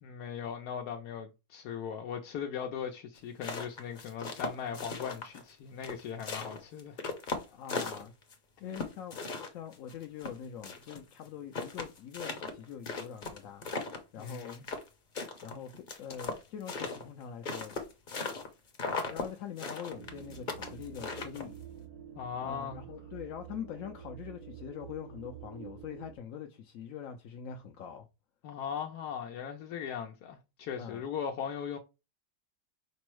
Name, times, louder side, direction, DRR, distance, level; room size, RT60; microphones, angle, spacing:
voice 1, 0.0-7.0 8.6-8.9 14.2-14.7 22.1-22.8 28.4-31.8, left 7 dB, 85° left, 1.2 m, -39 dB
sound 1, 3.2-5.5 5.8-8.3 8.7-11.0 11.2-11.3 11.5-14.9 15.1-18.5 18.7-19.3 19.6-21.6, left 4 dB, 40° left, 0.8 m, -37 dB
voice 2, 7.4-8.1 8.6-9.2 9.5-14.6 15.4-17.8 18.9-21.6 22.4-28.1 30.8-31.0, left 8 dB, 70° left, 0.9 m, -44 dB
sound 2, 19.9-26.2, right 10 dB, 80° right, 1.4 m, -48 dB
5.3 x 2.0 x 4.5 m
omnidirectional pair, 1.6 m